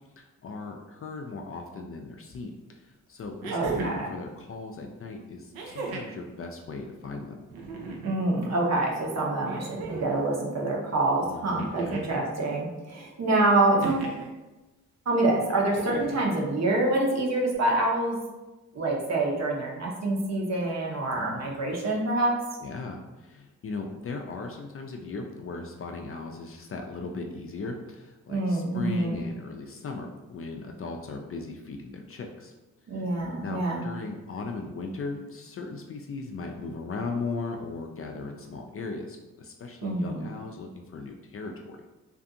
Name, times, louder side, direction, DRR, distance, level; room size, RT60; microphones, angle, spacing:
voice 1, 0.2-7.4 11.2-12.0 21.1-21.6 22.6-32.5 32.9-33.1 33.4-41.8, left 3 dB, 40° left, 3 dB, 0.4 m, -38 dB
sound 1, 2.3-2.4 3.4-4.1 5.5-6.2 7.5-8.2 9.4-10.2 11.6-12.3 13.8-14.3 15.6-16.2 17.5-17.6, right 4 dB, 75° right, 0.6 m, -36 dB
voice 2, 3.5-4.1 8.0-14.1 15.1-18.2 18.7-22.3 28.3-29.2 32.9-33.9 39.8-40.2, right 2 dB, 45° right, -2 dB, 0.8 m, -26 dB
2.6 x 2.4 x 2.6 m, 1.1 s
supercardioid pair, 45°, 37 cm